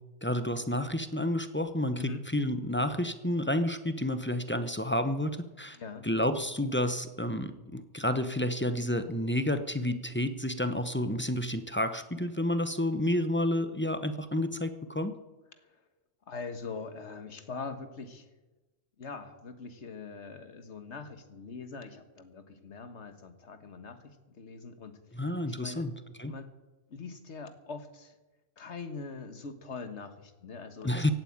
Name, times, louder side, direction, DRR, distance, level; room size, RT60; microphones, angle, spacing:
voice 1, 0.2-5.8 6.0-15.1 25.1-25.9 26.2-26.3 30.8-31.1, left 1 dB, 10° left, 10 dB, 0.7 m, -30 dB
voice 2, 1.9-2.3 5.7-6.1 15.6-15.8 16.3-18.3 19.0-25.9 26.3-26.5 26.9-28.2 28.6-31.1, left 4 dB, 70° left, 9 dB, 1.7 m, -43 dB
16.5 x 9.2 x 8.7 m, 1.1 s
omnidirectional pair, 1.2 m